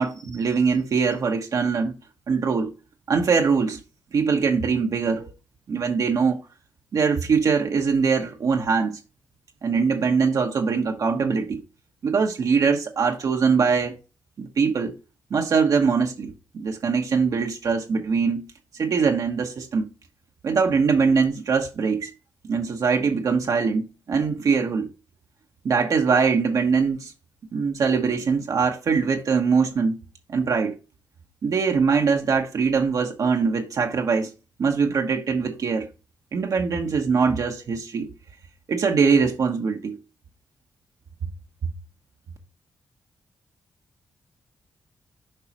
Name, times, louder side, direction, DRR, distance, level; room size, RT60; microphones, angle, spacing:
voice 1, 0.0-1.9 2.3-2.7 3.1-3.8 4.1-5.3 5.7-6.4 6.9-9.0 9.6-11.6 12.0-14.0 14.4-14.9 15.3-18.5 18.8-19.9 20.4-22.1 22.4-24.9 25.6-27.1 27.5-30.0 30.3-30.7 31.4-34.3 34.6-35.9 36.3-38.1 38.7-40.0, right 5 dB, 65° right, 1.0 m, -22 dB
7.9 x 4.8 x 3.0 m
supercardioid pair, 50°, 6 cm